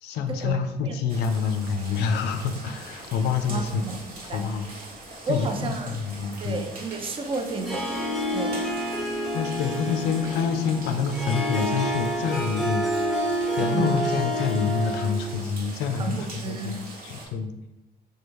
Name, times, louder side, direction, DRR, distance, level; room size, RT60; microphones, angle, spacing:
voice 1, 0.0-3.8 4.3-4.7 5.3-6.6 9.3-13.3 13.6-17.5, left 6 dB, 80° left, 7 dB, 0.4 m, -27 dB
sound 1, 1.1-17.3, right 2 dB, 55° right, 1.0 m, -42 dB
voice 2, 3.5-4.6 5.3-6.0 6.4-7.9 8.3-8.7 13.6-13.9 16.0-16.8, right 3 dB, 30° right, 5 dB, 0.4 m, -32 dB
Harp, 7.5-15.4, equal, ahead, 0.7 m, -28 dB
3.0 x 2.3 x 3.3 m, 0.98 s
cardioid pair, 110°, 17 cm